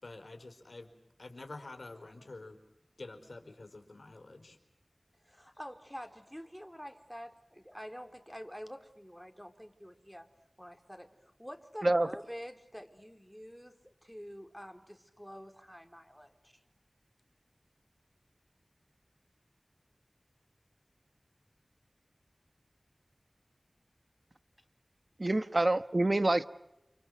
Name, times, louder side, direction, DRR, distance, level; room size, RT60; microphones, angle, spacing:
voice 1, 0.0-0.9 1.2-2.6 3.0-4.6, left 2 dB, 85° left, 4.6 m, -48 dB
voice 2, 5.2-10.3 10.6-13.8 14.0-16.5, equal, ahead, 3.8 m, -47 dB
voice 3, 25.2-26.5, right 2 dB, 50° right, 1.3 m, -27 dB
29.5 x 29.0 x 6.6 m
wide cardioid pair, 50°, 0 cm